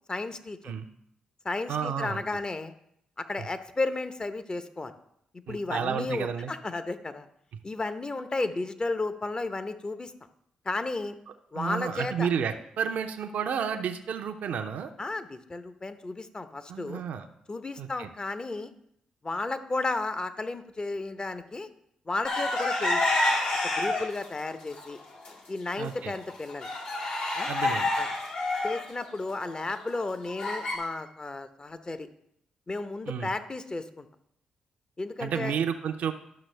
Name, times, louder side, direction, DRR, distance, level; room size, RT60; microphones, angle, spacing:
voice 1, 0.1-0.7 1.4-2.7 3.2-4.9 5.3-7.3 7.6-10.1 10.6-11.2 11.5-12.3 15.0-17.0 17.5-18.7 19.2-21.7 22.1-23.1 23.6-25.0 25.5-26.7 27.3-27.5 28.0-28.1 28.6-32.1 32.7-34.1 35.0-35.5, left 3 dB, 30° left, 10 dB, 0.9 m, -33 dB
voice 2, 1.7-2.2 5.5-6.5 11.6-14.9 16.7-17.3 17.8-18.1 25.8-26.1 27.5-27.9 33.1-33.3 35.2-36.1, right 7 dB, 70° right, 5 dB, 0.6 m, -31 dB
sound 1, 22.2-24.3 24.7-25.3 25.7-25.8 26.1-30.8, left 2 dB, 75° left, 2.3 m, -28 dB
11.5 x 6.0 x 3.3 m, 0.75 s
hypercardioid pair, 45°, 3 cm